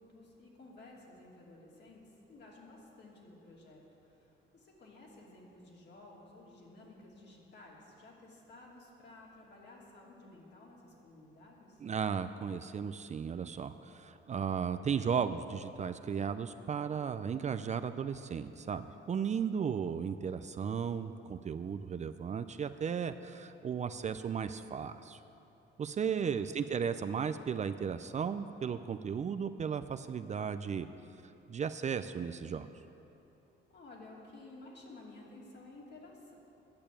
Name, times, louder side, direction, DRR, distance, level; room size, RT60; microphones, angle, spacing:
voice 1, 0.0-11.8 26.0-26.7 33.7-36.3, left 2 dB, 60° left, -3 dB, 2.7 m, -54 dB
voice 2, 11.8-25.2 25.8-30.9 31.5-32.7, right 7 dB, 35° right, 10 dB, 0.4 m, -35 dB
10.5 x 6.8 x 8.8 m, 2.9 s
cardioid pair, 90°, 20 cm